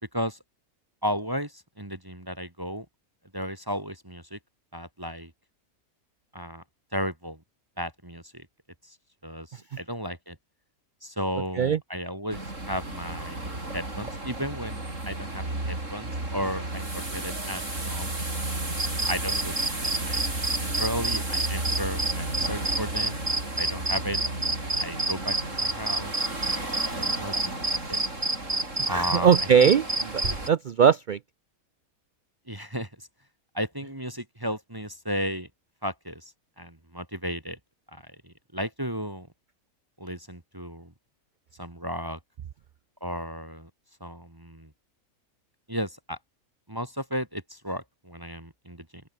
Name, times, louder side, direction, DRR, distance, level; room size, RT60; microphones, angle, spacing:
voice 1, 1.0-2.9 3.3-4.4 4.7-5.3 6.3-6.6 6.9-7.4 7.8-8.5 8.8-9.0 9.2-10.4 11.0-12.4 12.7-18.1 19.1-19.6 19.8-20.2 20.6-23.2 23.6-24.2 24.8-26.1 26.4-28.0 28.9-29.3 29.6-29.7 32.5-33.1 33.5-35.5 35.8-37.6 37.9-39.3 40.0-40.9 41.6-42.2 43.0-43.7 44.0-44.7 45.7-46.2 46.7-49.0, equal, 15° right, 2.1 m, -34 dB
sound 1, 12.3-30.5, right 2 dB, 60° right, 6.4 m, -33 dB
sound 2, 18.8-30.5, right 2 dB, 40° right, 3.8 m, -28 dB
voice 2, 28.8-29.8 30.1-30.2 30.5-31.2, right 7 dB, 90° right, 0.4 m, -20 dB
open air
omnidirectional pair, 1.5 m